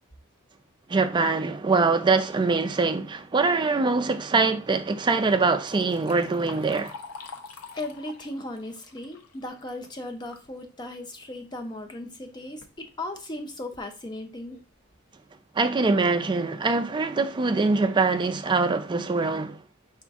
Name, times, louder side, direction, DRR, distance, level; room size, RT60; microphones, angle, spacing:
voice 1, 0.9-6.9 15.6-19.6, right 3 dB, 20° right, 0.4 m, -23 dB
Liquid, 5.4-10.5 10.9-11.0 11.9-12.0 12.4-12.8 13.4-13.5 14.0-14.1 14.5-14.7, left 4 dB, 90° left, 0.7 m, -46 dB
voice 2, 7.7-14.6, left 1 dB, 20° left, 0.6 m, -37 dB
5.0 x 2.4 x 3.5 m
head